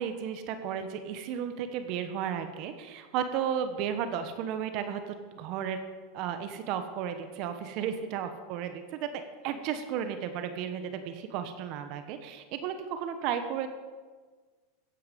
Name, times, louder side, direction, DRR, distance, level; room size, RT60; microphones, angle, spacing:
voice 1, 0.0-5.8 6.1-8.7 9.0-13.7, right 8 dB, 55° right, 8 dB, 1.2 m, -34 dB
15.0 x 9.5 x 5.3 m, 1.5 s
hypercardioid pair, 110°, 0 cm